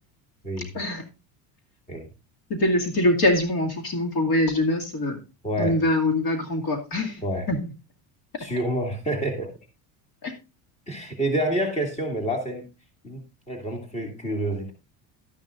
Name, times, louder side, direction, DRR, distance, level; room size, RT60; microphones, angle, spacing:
voice 1, 2.5-5.2 5.6-7.2 7.5-7.7 10.2-10.3, left 1 dB, 55° left, 3 dB, 2.4 m, -23 dB
voice 2, 5.4-5.8 7.2-7.5 8.4-9.5 10.9-12.6 13.0-13.2 13.5-14.7, right 1 dB, 15° left, 3 dB, 2.3 m, -28 dB
12.0 x 10.5 x 2.5 m, 0.28 s
cardioid pair, 150°, 41 cm